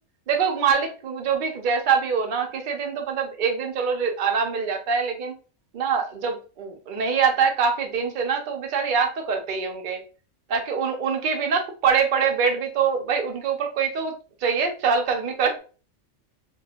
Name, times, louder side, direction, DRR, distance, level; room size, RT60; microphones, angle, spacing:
voice 1, 0.3-5.3 5.7-10.0 10.5-14.1 14.4-15.6, right 6 dB, 50° right, 3 dB, 0.7 m, -24 dB
3.1 x 3.0 x 2.4 m, 0.36 s
omnidirectional pair, 1.3 m